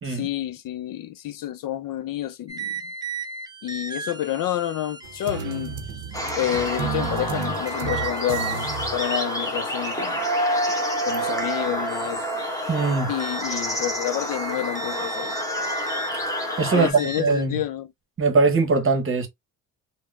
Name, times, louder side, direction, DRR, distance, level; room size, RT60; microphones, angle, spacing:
voice 1, 0.0-2.8 3.6-5.8 6.3-10.2 11.1-12.2 13.1-15.3 16.7-17.9, left 12 dB, 55° left, 0.5 m, -29 dB
sound 1, 2.5-17.5, right 3 dB, 10° right, 0.5 m, -37 dB
sound 2, 5.0-9.1, right 6 dB, 85° right, 0.7 m, -33 dB
sound 3, 6.1-16.9, equal, 10° left, 1.0 m, -28 dB
voice 2, 12.7-13.1 16.6-17.6 18.2-19.3, right 4 dB, 30° right, 0.9 m, -21 dB
3.5 x 2.1 x 2.3 m
cardioid pair, 80°, 41 cm